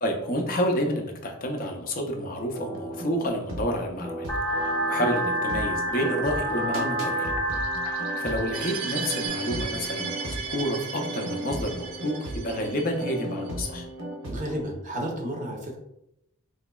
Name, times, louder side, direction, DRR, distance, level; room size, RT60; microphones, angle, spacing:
voice 1, 0.0-4.3 4.6-7.3 7.9-13.9, equal, 40° left, 2 dB, 0.5 m, -29 dB
sound 1, 2.5-14.6, right 1 dB, 70° right, 0.8 m, -36 dB
sound 2, 4.3-9.3, right 1 dB, 5° left, 0.8 m, -29 dB
sound 3, 8.5-13.5, right 6 dB, 85° right, 0.4 m, -36 dB
voice 2, 14.3-15.8, equal, 35° right, 0 dB, 0.6 m, -32 dB
3.8 x 3.0 x 2.2 m, 0.83 s
head